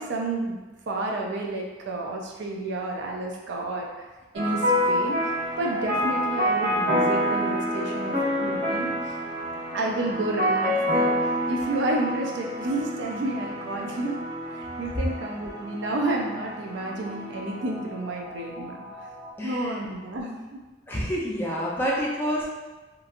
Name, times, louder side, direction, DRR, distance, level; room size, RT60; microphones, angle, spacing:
voice 1, 0.0-4.1 4.3-5.2 5.6-9.2 9.7-11.1 11.5-14.2 14.5-19.1 19.4-20.6, right 2 dB, 65° right, 0 dB, 0.4 m, -30 dB
sound 1, 4.3-19.3, equal, 45° right, 1.2 m, -28 dB
voice 2, 19.4-19.8 20.9-22.4, equal, 10° left, -5 dB, 0.4 m, -28 dB
3.0 x 2.4 x 2.4 m, 1.2 s
head